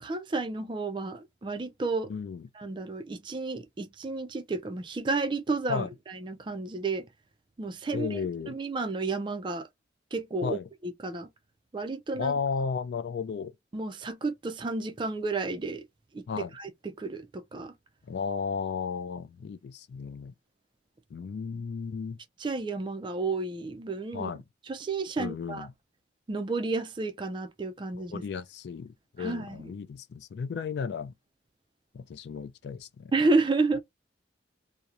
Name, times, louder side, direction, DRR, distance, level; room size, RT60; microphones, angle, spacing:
voice 1, 0.0-2.1 2.6-7.1 7.6-8.2 8.5-9.7 10.1-10.6 10.8-11.3 11.7-12.3 13.7-15.8 16.1-16.2 16.5-17.7 22.4-24.3 24.7-25.7 26.3-28.2 29.2-29.7 33.1-33.8, right 3 dB, 25° right, 0.3 m, -31 dB
voice 2, 2.1-2.4 5.7-5.9 7.9-8.6 10.4-10.7 12.1-13.5 16.3-16.5 18.1-20.3 21.1-22.2 24.1-24.4 25.2-25.7 27.9-31.1 31.9-33.1, left 5 dB, 65° left, 0.3 m, -34 dB
2.8 x 2.0 x 2.4 m
head